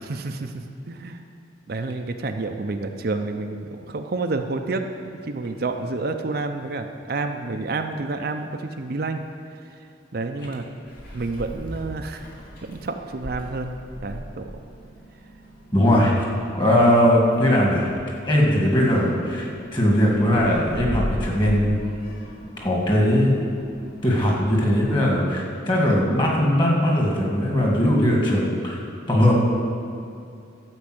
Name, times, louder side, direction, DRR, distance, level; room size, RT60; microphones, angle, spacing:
voice 1, 0.0-1.2 1.7-9.2 10.1-10.6 11.1-12.2 12.6-13.8 14.0-14.6, right 3 dB, 55° right, 5 dB, 0.5 m, -29 dB
Meow, 10.9-24.8, equal, 50° left, 2.3 m, -38 dB
voice 2, 15.7-16.3 16.6-17.9 18.2-21.8 22.6-23.3 24.0-28.8 29.1-29.4, equal, 25° left, -2 dB, 1.9 m, -19 dB
12.0 x 5.4 x 7.7 m, 2.4 s
head